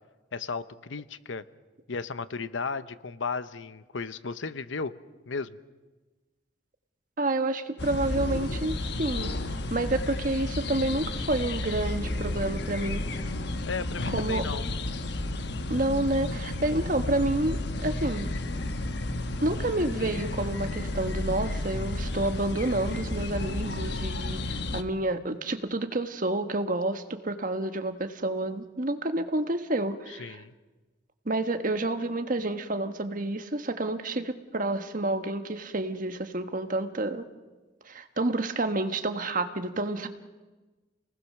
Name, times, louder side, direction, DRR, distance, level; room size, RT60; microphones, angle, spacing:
voice 1, 0.3-1.4 1.9-4.9 5.3-5.6 13.7-14.6 30.1-30.5, left 4 dB, 90° left, 14 dB, 0.9 m, -34 dB
voice 2, 7.2-9.3 9.7-13.0 14.1-14.5 15.7-18.3 19.4-30.4 31.2-37.3 37.8-40.1, right 2 dB, 45° right, 8 dB, 1.3 m, -29 dB
sound 1, 7.8-24.8, left 2 dB, 65° left, 1.1 m, -32 dB
Piano, 11.0-18.0, right 4 dB, 5° left, 5.4 m, -52 dB
29.0 x 19.5 x 6.6 m, 1.2 s
head